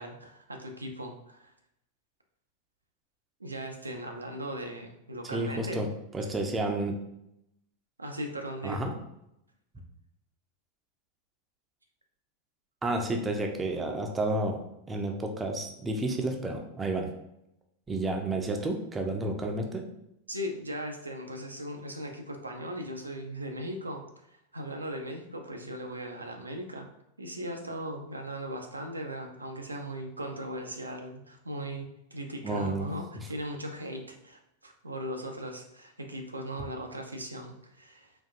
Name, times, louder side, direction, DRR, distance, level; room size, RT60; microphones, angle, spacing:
voice 1, 0.0-1.5 3.4-5.9 8.0-8.8 20.3-26.9 27.2-38.1, equal, 80° right, 3 dB, 0.4 m, -38 dB
voice 2, 5.3-5.9 6.1-7.0 8.6-8.9 12.8-14.6 14.9-17.1 17.9-19.8 32.4-32.9 33.2-33.3, right 2 dB, 15° right, 2 dB, 0.5 m, -31 dB
4.0 x 2.5 x 2.5 m, 0.80 s
figure-of-eight pair, 90°, 0 cm